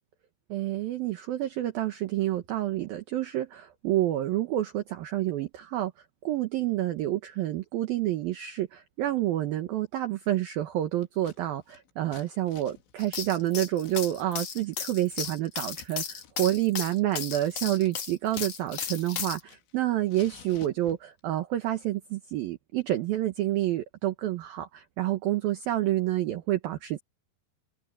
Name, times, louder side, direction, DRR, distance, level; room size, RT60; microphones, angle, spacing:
voice 1, 0.5-5.9 6.2-27.0, right 14 dB, 65° right, 2.6 m, -29 dB
Scissors, 11.0-11.4 11.6-15.4 15.7-15.9 16.2-16.3 16.7-18.5 18.8-19.8 20.1-21.2, left 9 dB, 80° left, 4.3 m, -53 dB
sound 1, 13.0-19.4, left 7 dB, 45° left, 2.4 m, -35 dB
omnidirectional pair, 5.2 m